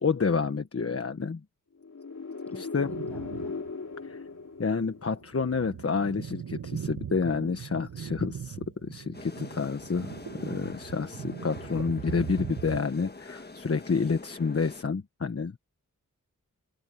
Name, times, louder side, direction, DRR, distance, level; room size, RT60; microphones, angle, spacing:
voice 1, 0.0-1.4 2.5-2.9 4.0-4.2 4.6-15.6, left 5 dB, 45° left, 1.3 m, -29 dB
sound 1, 1.8-5.6, left 4 dB, 60° left, 2.7 m, -38 dB
voice 2, 2.5-3.6, equal, 5° left, 7.9 m, -51 dB
sound 2, 2.8-3.7 4.1-4.2 4.9-12.8, right 8 dB, 85° right, 1.3 m, -40 dB
sound 3, 9.1-14.8, left 3 dB, 30° left, 1.6 m, -45 dB
wide cardioid pair, 90°, 32 cm